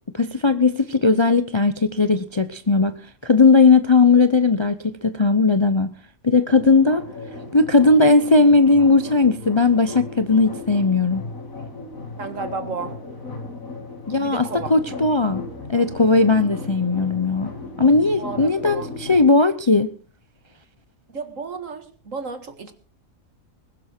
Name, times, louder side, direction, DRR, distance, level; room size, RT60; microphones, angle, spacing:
voice 1, 0.1-3.0 3.2-6.0 6.2-7.0 7.5-11.3 14.1-14.4 14.7-17.5 17.8-19.9, left 3 dB, 30° left, 0.6 m, -17 dB
sound 1, 6.5-19.2, left 3 dB, 70° left, 4.2 m, -36 dB
voice 2, 12.2-12.9 14.2-14.7 18.2-18.9 21.1-22.7, right 4 dB, 65° right, 2.1 m, -32 dB
20.5 x 11.5 x 4.5 m
omnidirectional pair, 1.5 m